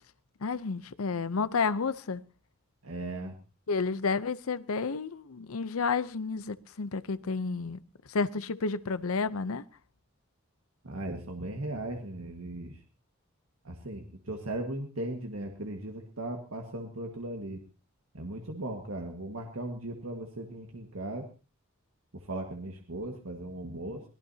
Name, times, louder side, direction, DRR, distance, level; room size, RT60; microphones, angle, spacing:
voice 1, 0.4-2.2 3.7-7.8 8.1-9.7, left 4 dB, 75° left, 0.7 m, -31 dB
voice 2, 2.8-3.4 10.8-12.8 13.6-17.6 18.1-21.3 22.1-24.0, right 1 dB, 75° right, 1.8 m, -37 dB
23.0 x 17.5 x 2.8 m
head